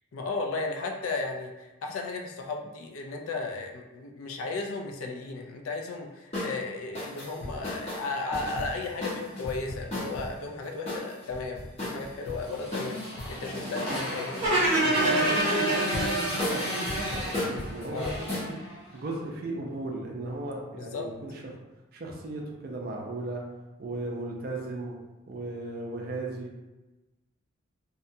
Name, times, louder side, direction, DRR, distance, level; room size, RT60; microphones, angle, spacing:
voice 1, 0.1-13.0 13.3-14.7 17.9-18.2 20.7-21.1, left 3 dB, 85° left, 2 dB, 0.4 m, -35 dB
sound 1, 6.3-6.5 6.9-10.3 10.9-12.4 12.7-14.0 14.3-18.5, left 1 dB, 30° left, 0.7 m, -35 dB
Motorcycle, 12.4-19.1, left 1 dB, 65° left, 1.2 m, -35 dB
sound 2, 14.4-17.6, right 2 dB, 30° right, 0.8 m, -26 dB
voice 2, 14.8-18.5 18.9-21.5 21.9-23.4 23.8-25.0 25.3-26.7, right 2 dB, 45° right, 0 dB, 0.4 m, -36 dB
2.6 x 2.2 x 2.6 m, 1.1 s
head